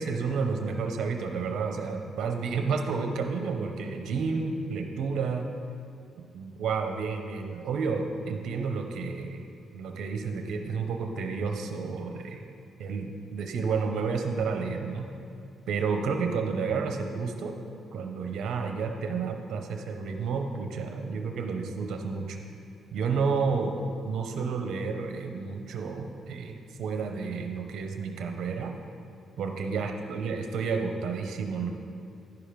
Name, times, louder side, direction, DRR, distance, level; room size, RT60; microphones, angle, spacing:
voice 1, 0.0-5.5 6.3-9.4 9.7-12.4 12.8-15.1 15.7-17.6 17.9-22.4 22.9-28.7 29.4-31.7, right 5 dB, 75° right, 4 dB, 0.7 m, -31 dB
10.5 x 4.9 x 5.1 m, 2.6 s
cardioid pair, 90°, 0 cm